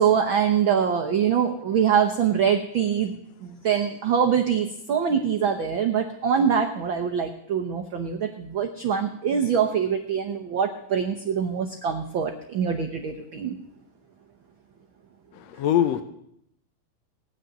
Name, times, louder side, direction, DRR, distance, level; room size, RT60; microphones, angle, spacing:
voice 1, 0.0-13.5, right 7 dB, 70° right, 5 dB, 1.2 m, -24 dB
voice 2, 15.3-16.0, left 10 dB, 70° left, 9 dB, 1.8 m, -23 dB
19.5 x 6.5 x 9.2 m, 0.75 s
omnidirectional pair, 3.5 m